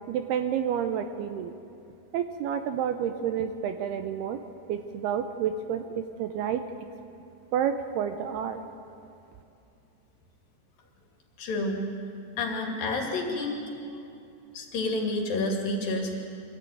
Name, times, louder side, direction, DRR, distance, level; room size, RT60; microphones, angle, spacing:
voice 1, 0.1-1.5 2.1-4.4 4.7-6.6 7.5-8.6, right 8 dB, 75° right, 8 dB, 2.5 m, -29 dB
voice 2, 11.4-11.8 12.4-13.6 13.9-14.0 14.5-16.2, left 2 dB, 55° left, 1 dB, 3.8 m, -29 dB
24.5 x 14.5 x 9.3 m, 2.6 s
omnidirectional pair, 5.0 m